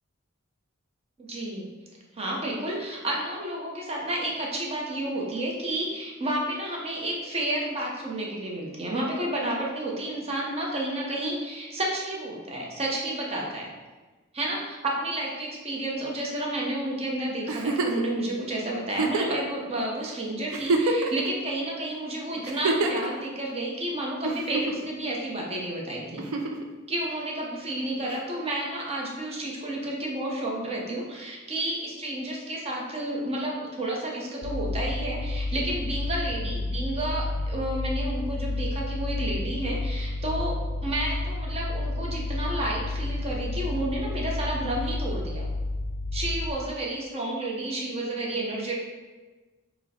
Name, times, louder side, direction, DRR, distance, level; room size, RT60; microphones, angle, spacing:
voice 1, 1.2-1.7 2.1-13.7 14.3-26.3 26.9-45.5 46.1-48.8, right 1 dB, 30° right, -2 dB, 0.7 m, -31 dB
Giggle, 17.5-18.1 18.9-19.4 20.1-20.2 20.5-21.3 22.4-23.1 24.2-24.9 26.2-26.6 28.1-28.2, right 3 dB, 85° right, 0.4 m, -26 dB
sound 1, 34.4-46.5, left 2 dB, 80° left, 0.4 m, -31 dB
4.5 x 2.1 x 4.2 m, 1.3 s
head